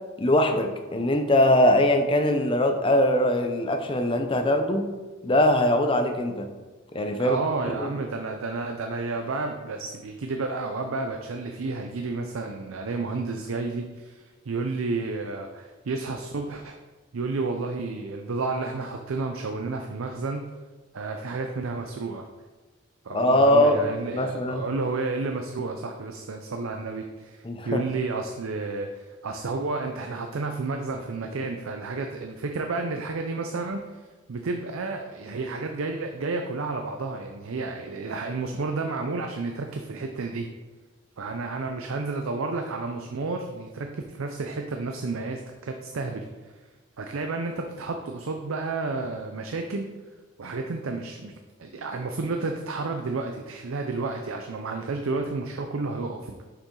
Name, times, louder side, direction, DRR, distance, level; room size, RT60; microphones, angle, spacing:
voice 1, 0.2-4.9 5.2-6.5 6.9-7.4 7.8-7.9 23.1-23.8 24.1-24.6 27.4-27.8, left 1 dB, 25° left, 6 dB, 0.6 m, -21 dB
voice 2, 7.2-16.8 17.1-20.5 20.9-22.3 23.0-40.5 41.2-46.3 47.0-49.9 50.4-51.3 51.6-56.3, right 3 dB, 85° right, 4 dB, 0.5 m, -31 dB
6.7 x 5.8 x 3.8 m, 1.3 s
head